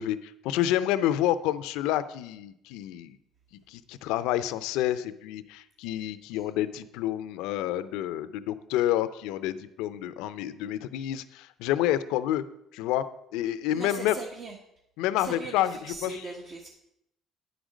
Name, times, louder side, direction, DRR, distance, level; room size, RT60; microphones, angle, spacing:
voice 1, 0.0-3.2 3.7-12.4 12.7-13.0 13.3-14.1 15.0-16.3, left 12 dB, 85° left, 13 dB, 0.5 m, -29 dB
voice 2, 13.7-14.6 15.2-16.7, right 3 dB, 55° right, 0 dB, 1.2 m, -40 dB
9.6 x 5.1 x 6.2 m, 0.79 s
cardioid pair, 100°, 0 cm